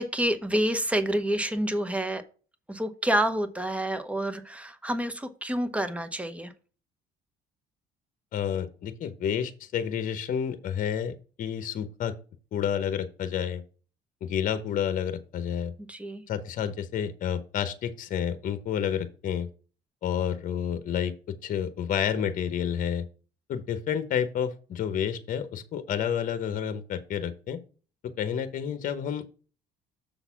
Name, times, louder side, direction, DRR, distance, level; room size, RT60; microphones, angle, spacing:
voice 1, 0.0-2.2 2.7-6.5 15.9-16.2, right 1 dB, 10° right, 10 dB, 0.9 m, -28 dB
voice 2, 8.3-12.1 12.5-13.6 14.2-15.7 16.3-19.5 20.0-23.0 23.5-27.6 28.0-29.2, left 8 dB, 55° left, 11 dB, 0.9 m, -30 dB
6.9 x 4.0 x 5.7 m, 0.37 s
cardioid pair, 110°, 17 cm